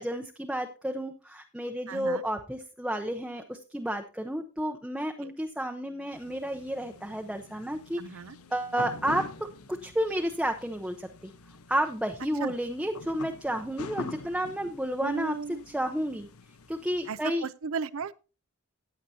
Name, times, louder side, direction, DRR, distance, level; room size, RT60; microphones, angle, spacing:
voice 1, 0.0-8.2 8.5-9.5 9.8-11.3 11.7-16.3 16.7-17.5, right 1 dB, 5° right, 0.7 m, -31 dB
voice 2, 1.9-2.2 5.2-5.3 8.0-8.4 12.4-12.5 15.0-15.6 17.1-18.1, right 5 dB, 65° right, 0.6 m, -35 dB
sound 1, 6.1-17.2, left 3 dB, 85° left, 1.1 m, -45 dB
15.5 x 9.3 x 2.8 m
head